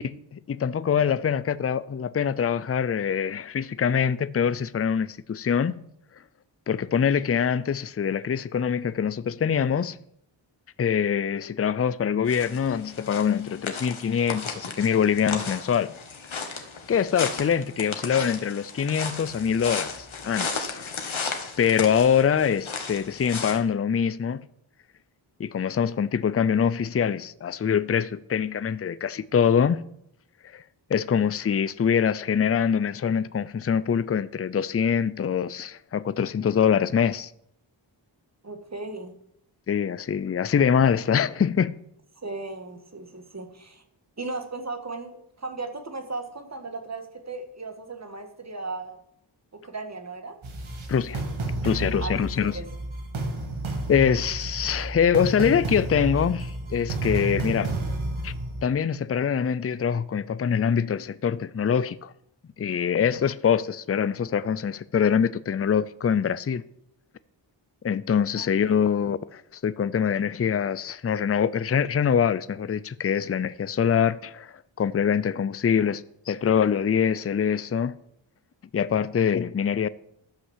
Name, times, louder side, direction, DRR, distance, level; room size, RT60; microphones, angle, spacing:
voice 1, 0.0-5.8 6.7-10.0 10.8-15.9 16.4-20.9 21.6-24.4 25.4-29.8 30.5-30.6 30.9-37.3 39.7-41.8 50.9-51.2 51.6-52.5 53.9-57.7 58.2-58.3 58.6-62.1 62.6-66.6 67.8-77.9 78.7-79.9, left 7 dB, 30° left, 0.5 m, -24 dB
sound 1, 12.3-23.6, left 4 dB, 80° left, 1.7 m, -35 dB
voice 2, 38.4-39.1 42.2-43.8 44.2-49.0 49.6-50.4 52.0-52.7 68.3-68.9, right 3 dB, 35° right, 1.7 m, -36 dB
sound 2, 50.4-58.6, right 2 dB, 80° right, 2.0 m, -31 dB
12.5 x 5.8 x 7.4 m
wide cardioid pair, 90°, 47 cm